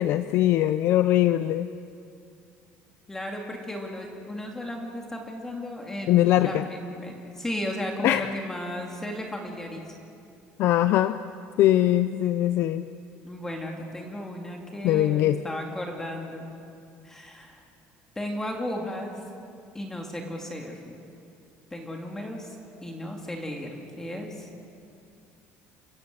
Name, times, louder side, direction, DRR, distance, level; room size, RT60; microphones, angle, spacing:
voice 1, 0.0-1.7 6.1-6.7 8.0-8.3 10.6-11.2 11.6-12.9 14.8-15.4, left 13 dB, 55° left, 11 dB, 0.6 m, -21 dB
voice 2, 3.1-9.9 13.2-16.5 17.0-17.6 18.2-19.1 19.7-21.0 21.7-22.6 22.8-24.5, left 1 dB, 10° left, 1 dB, 2.2 m, -35 dB
29.0 x 16.0 x 8.1 m, 2.5 s
cardioid pair, 160°, 5 cm